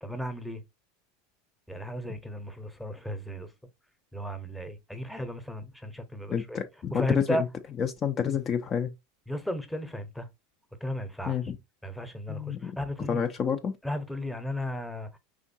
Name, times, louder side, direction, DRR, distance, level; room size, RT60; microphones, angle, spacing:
voice 1, 0.0-0.6 1.7-3.5 4.1-6.6 6.9-7.4 9.3-10.3 10.8-11.5 11.8-13.2 13.8-15.2, equal, 5° left, 0.9 m, -35 dB
voice 2, 6.3-7.4 7.8-8.9 11.3-11.6 12.3-12.7 13.1-13.7, left 7 dB, 30° left, 0.5 m, -29 dB
4.9 x 3.6 x 2.7 m
supercardioid pair, 125°, 0 cm